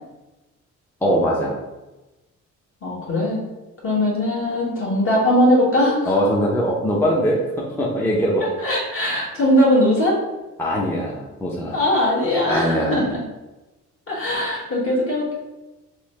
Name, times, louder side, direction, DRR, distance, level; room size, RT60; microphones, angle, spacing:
voice 1, 1.0-1.5 6.1-8.4 10.6-11.8 12.4-13.1, equal, 10° left, -3 dB, 0.5 m, -21 dB
voice 2, 2.8-3.4 3.8-6.1 8.6-10.2 11.7-13.2 14.1-15.3, left 1 dB, 45° left, -4 dB, 1.3 m, -20 dB
3.1 x 2.1 x 3.1 m, 1.0 s
cardioid pair, 90°, 30 cm